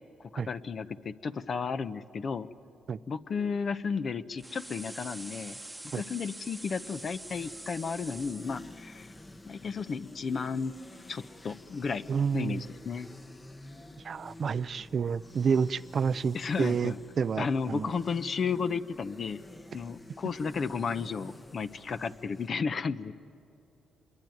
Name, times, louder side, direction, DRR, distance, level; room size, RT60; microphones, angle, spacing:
voice 1, 0.3-2.5 3.1-5.6 5.9-9.1 9.5-10.7 11.1-12.0 12.3-13.1 16.3-17.0 17.4-19.4 19.7-23.1, left 5 dB, 45° left, 12 dB, 0.9 m, -33 dB
sound 1, 4.4-8.6, right 1 dB, 10° right, 1.1 m, -45 dB
sound 2, 6.8-22.5, left 1 dB, 20° left, 1.1 m, -49 dB
voice 2, 12.1-12.6 14.0-17.9, right 6 dB, 50° right, 16 dB, 0.5 m, -29 dB
26.5 x 22.5 x 9.3 m, 3.0 s
cardioid pair, 90°, 0 cm